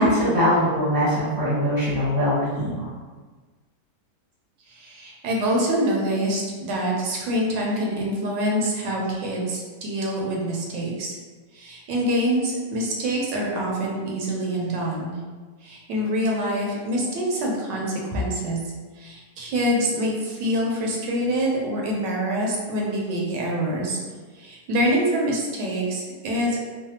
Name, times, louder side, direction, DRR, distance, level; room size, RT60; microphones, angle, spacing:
voice 1, 0.0-2.9, equal, 20° right, -11 dB, 0.7 m, -21 dB
voice 2, 4.7-11.1 11.5-15.1 15.6-18.6 19.0-24.0 24.3-26.6, equal, 80° right, -2 dB, 1.3 m, -25 dB
3.2 x 2.0 x 2.8 m, 1.4 s
omnidirectional pair, 1.9 m